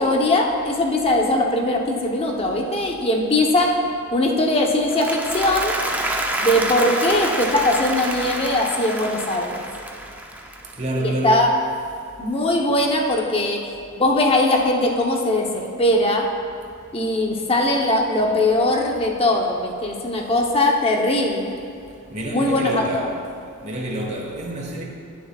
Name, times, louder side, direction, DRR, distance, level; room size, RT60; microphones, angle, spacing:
voice 1, 0.0-3.7 4.1-5.8 6.4-9.6 11.0-11.5 12.2-13.6 14.0-16.3 16.9-21.5 22.3-23.1, left 1 dB, 25° left, 0.9 m, -20 dB
Applause, 4.7-11.1, right 1 dB, 10° right, 0.7 m, -28 dB
voice 2, 10.8-11.5 22.1-23.2 23.6-24.8, right 1 dB, 30° right, 1.4 m, -27 dB
19.0 x 7.4 x 2.4 m
head